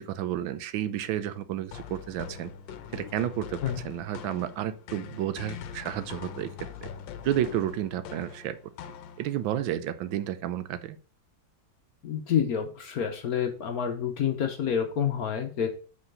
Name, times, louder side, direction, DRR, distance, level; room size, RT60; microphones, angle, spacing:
voice 1, 0.0-2.5 2.9-6.5 6.8-6.9 7.2-8.6 9.2-11.0, right 11 dB, 80° right, 13 dB, 1.4 m, -31 dB
sound 1, 1.7-9.5, left 8 dB, 75° left, 1.3 m, -42 dB
voice 2, 12.0-15.7, left 8 dB, 60° left, 4 dB, 1.1 m, -28 dB
5.6 x 4.0 x 5.3 m, 0.38 s
omnidirectional pair, 2.1 m